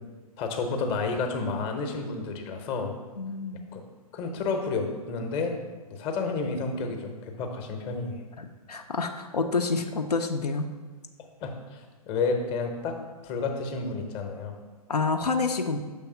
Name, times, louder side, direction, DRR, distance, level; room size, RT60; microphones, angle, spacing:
voice 1, 0.4-2.9 3.7-3.8 4.1-5.5 5.9-8.2 11.4-13.0 13.2-14.6, left 4 dB, 25° left, 4 dB, 0.7 m, -30 dB
voice 2, 3.2-3.6 8.4-10.7 14.9-15.8, left 4 dB, 85° left, 4 dB, 0.5 m, -28 dB
5.9 x 3.4 x 5.5 m, 1.3 s
figure-of-eight pair, 120°, 20 cm